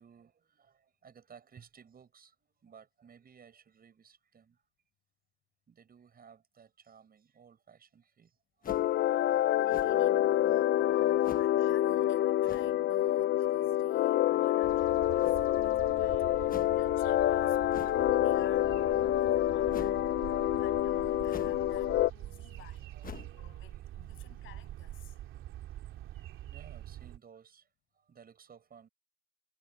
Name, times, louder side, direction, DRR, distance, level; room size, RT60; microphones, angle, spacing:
voice 1, 0.0-4.6 5.7-8.8 9.3-9.4 10.2-10.6 15.3-16.3 20.4-20.5 22.4-23.4 25.2-25.5 26.1-27.7 27.9-28.9, right 7 dB, 50° right, 7.3 m, -58 dB
sound 1, 8.6-9.0 9.7-10.1 11.2-11.6 12.4-12.8 15.2-15.6 16.5-16.8 17.7-18.1 19.7-20.0 21.3-21.7 22.0-22.1 23.0-23.4, left 7 dB, 45° left, 1.3 m, -46 dB
sound 2, 8.7-22.1, left 13 dB, 65° left, 0.5 m, -27 dB
voice 2, 9.6-10.5 10.9-17.9 18.2-18.8 19.1-20.1 20.5-22.9 23.3-25.2, left 14 dB, 85° left, 7.3 m, -56 dB
sound 3, 14.6-27.2, right 13 dB, 85° right, 3.0 m, -45 dB
cardioid pair, 90°, 20 cm